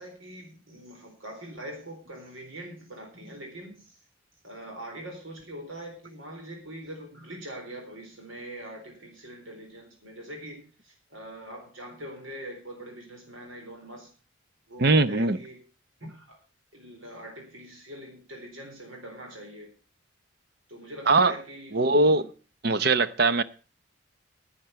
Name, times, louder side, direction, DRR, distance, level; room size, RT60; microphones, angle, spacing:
voice 1, 0.0-4.0 4.4-14.1 14.7-15.6 16.1-16.4 16.7-19.7 20.7-22.3, right 1 dB, 80° right, 2 dB, 4.1 m, -43 dB
voice 2, 14.8-15.4 21.1-21.3 21.7-22.3 22.6-23.4, right 3 dB, 50° right, 14 dB, 0.8 m, -21 dB
10.5 x 9.0 x 6.7 m, 0.36 s
head